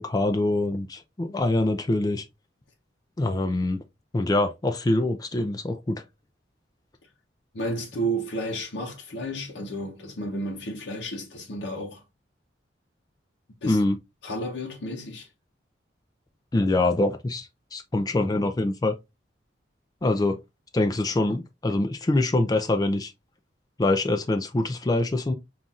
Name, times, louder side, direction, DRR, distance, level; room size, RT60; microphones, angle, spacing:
voice 1, 0.0-2.2 3.2-3.8 4.1-6.0 13.7-14.0 16.5-19.0 20.0-20.4 20.7-23.1 23.8-25.3, left 2 dB, 20° left, 0.3 m, -24 dB
voice 2, 7.5-12.0 13.6-13.8 14.2-15.3, right 1 dB, 60° left, 0.7 m, -32 dB
5.4 x 2.4 x 2.4 m
head